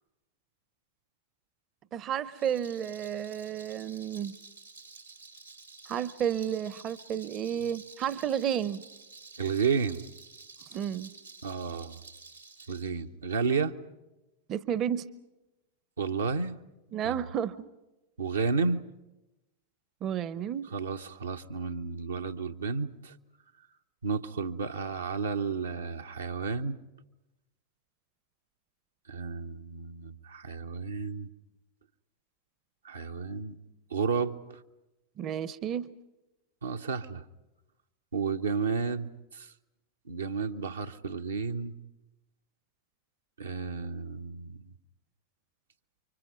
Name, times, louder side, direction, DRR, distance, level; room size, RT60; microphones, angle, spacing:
voice 1, 1.9-4.4 5.9-8.8 10.7-11.1 14.5-15.1 16.9-17.6 20.0-20.7 35.2-35.9, right 9 dB, 30° right, 18 dB, 0.7 m, -32 dB
Rattle, 2.3-12.9, right 4 dB, 90° right, 3.3 m, -51 dB
voice 2, 9.4-10.1 11.4-12.0 12.7-13.8 16.0-16.6 17.0-17.1 18.2-19.0 20.7-23.2 24.0-26.8 29.1-31.3 32.8-33.6 33.9-34.6 36.6-37.3 38.1-39.5 40.1-41.8 43.4-44.6, right 5 dB, 70° right, 5 dB, 0.9 m, -32 dB
30.0 x 24.5 x 5.2 m, 1.0 s
figure-of-eight pair, 90°, 0 cm